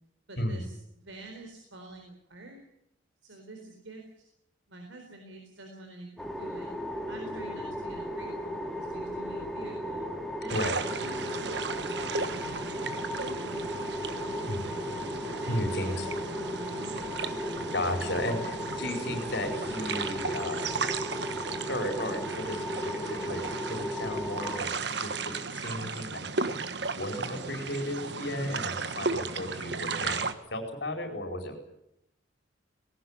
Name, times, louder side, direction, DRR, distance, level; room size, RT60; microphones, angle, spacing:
voice 1, 0.3-0.8 1.0-2.6 3.2-4.3 4.7-6.7 7.1-10.0 10.4-14.6 15.4-16.0 16.3-17.5, right 2 dB, 80° right, 3 dB, 4.2 m, -47 dB
sound 1, 6.2-24.6, equal, ahead, 2.3 m, -36 dB
sound 2, 10.5-30.3, right 4 dB, 60° right, 1.4 m, -35 dB
voice 2, 15.5-16.1 17.7-20.7 21.7-26.6 27.0-31.6, left 1 dB, 60° left, 5 dB, 4.8 m, -34 dB
19.5 x 17.5 x 9.8 m, 0.81 s
head